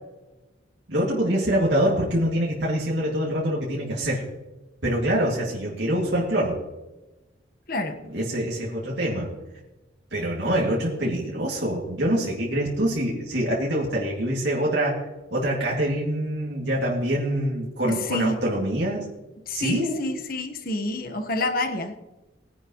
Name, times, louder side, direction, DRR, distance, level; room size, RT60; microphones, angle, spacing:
voice 1, 0.9-4.2 4.8-6.6 8.1-9.3 10.1-15.0 15.3-19.0 19.5-20.0, right 1 dB, 70° right, -4 dB, 2.4 m, -25 dB
voice 2, 18.1-18.4 19.5-22.0, left 1 dB, 50° left, 6 dB, 1.3 m, -28 dB
20.5 x 10.5 x 3.1 m, 1.1 s
head